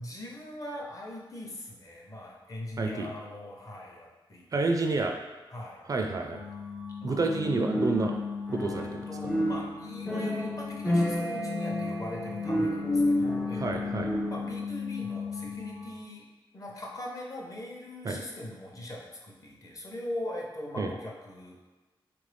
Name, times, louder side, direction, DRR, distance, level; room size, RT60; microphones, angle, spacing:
voice 1, 0.0-4.7 5.5-5.8 7.0-7.3 8.8-16.3 16.5-21.6, left 1 dB, 40° left, -2 dB, 0.8 m, -41 dB
voice 2, 2.8-3.1 4.5-5.2 5.9-6.4 7.0-8.2 8.5-9.1 13.6-14.1 18.0-18.2 20.8-20.9, right 3 dB, 40° right, 3 dB, 0.3 m, -29 dB
sound 1, 6.3-16.0, left 6 dB, 75° left, 0.5 m, -37 dB
sound 2, 7.6-9.0 9.2-14.5, equal, 5° left, 0.6 m, -30 dB
3.2 x 2.5 x 3.3 m, 1.2 s
cardioid pair, 70°, 9 cm